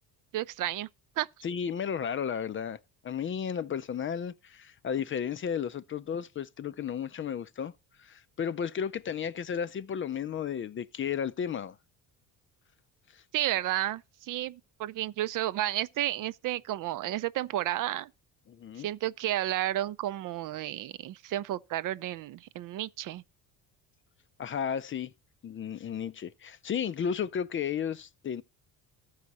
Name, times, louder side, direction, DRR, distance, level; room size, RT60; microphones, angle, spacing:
voice 1, 0.3-0.9 1.2-1.3 13.3-18.1 18.8-23.2, right 14 dB, 55° right, 0.5 m, -32 dB
voice 2, 1.4-2.8 3.0-7.7 8.0-11.8 13.1-13.2 18.5-18.9 24.4-25.1 25.4-28.4, left 8 dB, 35° left, 0.5 m, -33 dB
14.0 x 4.8 x 4.1 m
cardioid pair, 115°, 38 cm